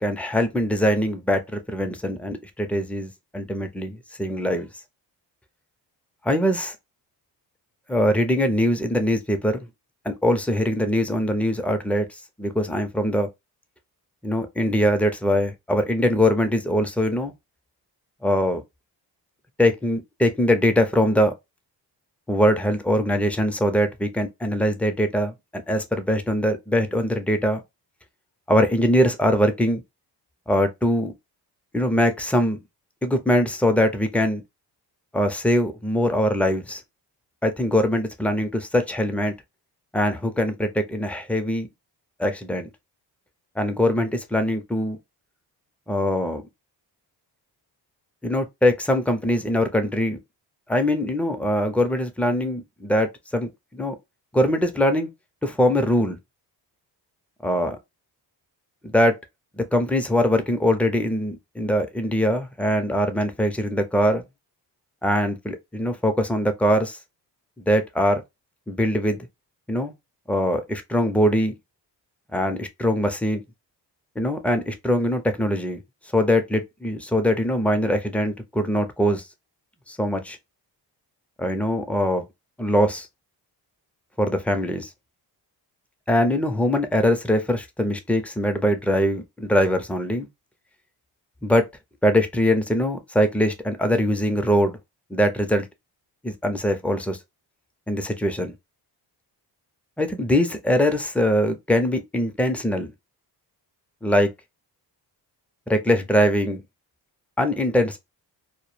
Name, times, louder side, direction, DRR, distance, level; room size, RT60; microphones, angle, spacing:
voice 1, 0.0-4.7 6.2-6.7 7.9-9.7 10.0-13.3 14.2-17.3 18.2-18.6 19.6-21.3 22.3-25.3 25.7-27.6 28.5-29.8 30.5-31.1 31.7-32.6 33.0-34.4 35.1-36.8 37.4-39.3 39.9-41.7 42.2-42.7 43.6-45.0 45.9-46.4 48.2-50.2 50.7-54.0 54.3-55.1 55.4-56.2 57.4-57.8 58.8-59.2 59.6-64.2 65.0-67.0 67.7-68.2 68.7-69.2 69.7-69.9 70.3-71.5 72.3-73.4 74.2-75.8 76.1-79.3 79.9-80.4 81.4-82.2 82.6-83.1 84.2-84.9 86.1-90.3 91.4-91.7 92.0-94.8 95.1-95.7 96.2-97.2 97.9-98.5 100.0-102.9 104.0-104.3 105.7-106.6 107.4-108.0, equal, 5° left, 0.4 m, -22 dB
2.1 x 2.1 x 3.0 m
cardioid pair, 80°, 43 cm